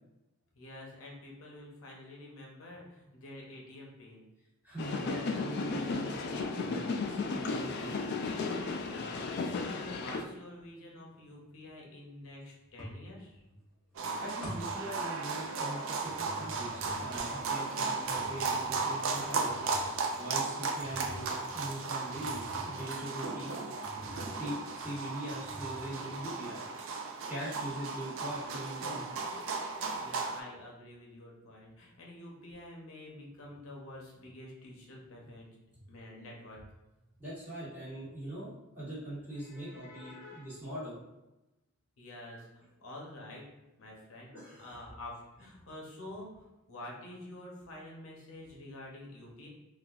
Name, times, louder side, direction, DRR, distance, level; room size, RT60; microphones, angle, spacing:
voice 1, 0.6-4.2 8.8-13.4 30.0-35.6 35.9-36.6 39.3-40.5 42.0-43.5 43.8-44.3 44.6-49.5, left 1 dB, 70° left, -2 dB, 0.7 m, -48 dB
voice 2, 4.6-8.0 14.2-19.5 20.1-23.5 24.1-26.6 27.3-29.0 37.2-40.9 44.3-44.7, right 1 dB, 10° right, -11 dB, 1.3 m, -42 dB
sound 1, 4.8-10.2, left 3 dB, 50° left, 0.3 m, -34 dB
sound 2, 9.3-9.8 12.8-13.7 13.9-15.6 15.9-23.2 23.7-24.5 24.8-24.9 25.3-26.2, equal, 5° left, 1.1 m, -48 dB
sound 3, 14.0-30.4, right 4 dB, 65° right, 0.4 m, -35 dB
4.0 x 2.4 x 2.4 m, 0.99 s
head